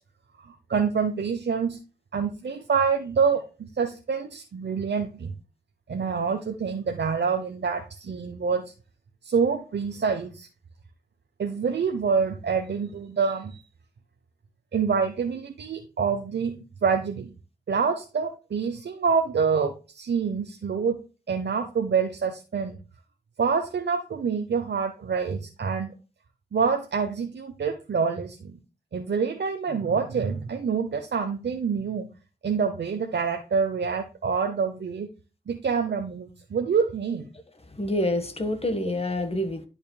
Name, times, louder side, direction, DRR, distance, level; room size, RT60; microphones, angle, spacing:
voice 1, 0.4-1.8 2.1-5.3 5.9-8.7 9.2-10.5 11.4-13.6 14.7-17.3 17.7-21.0 21.3-22.8 23.4-25.9 26.5-28.6 28.9-32.1 32.4-35.1 35.5-37.3, right 5 dB, 80° right, 0.9 m, -26 dB
voice 2, 37.7-39.7, left 1 dB, 35° left, 1.6 m, -27 dB
11.0 x 5.4 x 2.3 m
wide cardioid pair, 70°, 18 cm